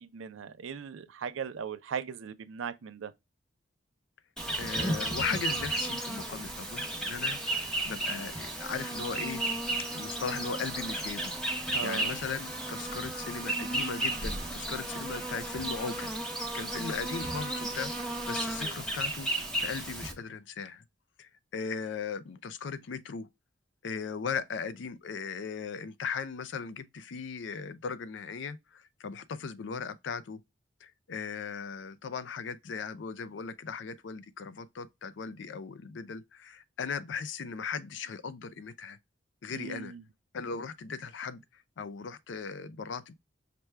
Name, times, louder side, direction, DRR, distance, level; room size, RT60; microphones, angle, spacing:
voice 1, 0.0-3.1 11.7-12.2 39.5-40.0, right 6 dB, 85° right, 0.4 m, -38 dB
Insect, 4.4-20.1, right 1 dB, 5° left, 0.7 m, -34 dB
voice 2, 4.6-9.4 9.9-11.4 11.8-16.1 16.5-20.8 21.2-23.3 23.8-30.4 30.8-39.0 39.4-39.9 40.3-43.1, left 5 dB, 70° left, 0.4 m, -38 dB
5.8 x 2.2 x 3.2 m
head